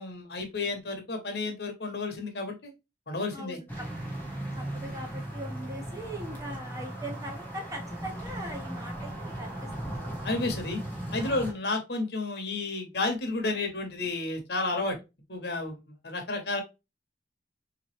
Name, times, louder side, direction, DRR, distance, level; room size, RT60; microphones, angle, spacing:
voice 1, 0.0-2.7 3.1-3.6 10.2-10.8 11.1-15.0 15.3-16.6, left 2 dB, 60° left, 5 dB, 1.0 m, -31 dB
voice 2, 3.3-3.9 4.5-9.9 11.2-11.5, right 1 dB, 20° right, 1 dB, 0.9 m, -41 dB
sound 1, 3.7-11.5, right 1 dB, 10° left, 1.0 m, -37 dB
3.6 x 2.9 x 3.1 m, 0.25 s
head